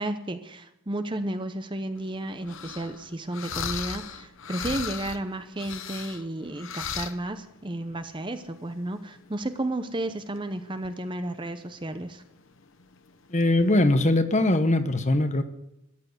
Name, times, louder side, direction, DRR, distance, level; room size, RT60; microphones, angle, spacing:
voice 1, 0.0-12.2, right 1 dB, 20° right, 9 dB, 0.8 m, -33 dB
sound 1, 2.0-14.2, left 7 dB, 60° left, 0.9 m, -38 dB
voice 2, 13.3-15.4, left 1 dB, 30° left, 9 dB, 1.0 m, -21 dB
14.0 x 10.5 x 8.0 m, 0.83 s
head